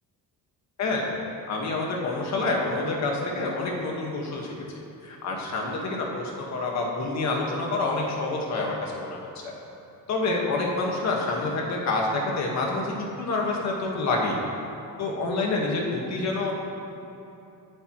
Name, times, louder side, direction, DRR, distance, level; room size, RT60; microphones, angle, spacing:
voice 1, 1.5-9.2 9.4-9.5 10.1-14.4 15.0-16.5, left 3 dB, 50° left, -1 dB, 1.7 m, -27 dB
23.5 x 8.6 x 3.1 m, 2.7 s
cardioid pair, 175°, 35 cm